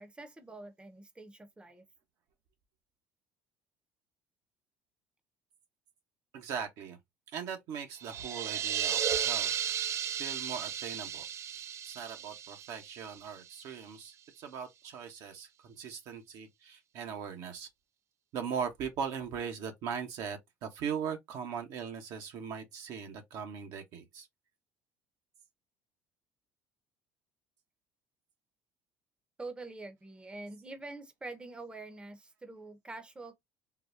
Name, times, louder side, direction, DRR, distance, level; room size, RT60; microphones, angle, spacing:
voice 1, 0.0-1.8 29.4-33.3, right 2 dB, 15° right, 0.8 m, -45 dB
voice 2, 6.3-7.0 7.3-9.6 10.2-11.2 11.5-17.7 18.3-24.3, right 7 dB, 65° right, 1.0 m, -39 dB
sound 1, 8.0-13.6, right 9 dB, 45° right, 0.4 m, -34 dB
3.8 x 2.2 x 2.6 m
hypercardioid pair, 70°, 7 cm